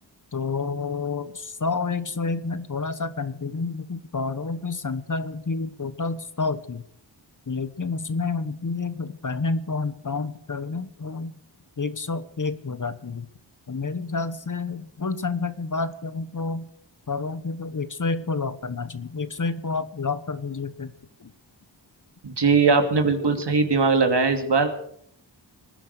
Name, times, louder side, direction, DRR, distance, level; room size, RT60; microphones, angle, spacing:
voice 1, 0.3-6.8 7.5-11.3 11.8-13.3 13.7-16.7 17.1-20.9 21.2-21.3, left 4 dB, 40° left, 13 dB, 1.2 m, -29 dB
voice 2, 22.2-24.7, right 4 dB, 60° right, 5 dB, 2.7 m, -20 dB
20.0 x 10.0 x 6.7 m, 0.68 s
cardioid pair, 50°, 45 cm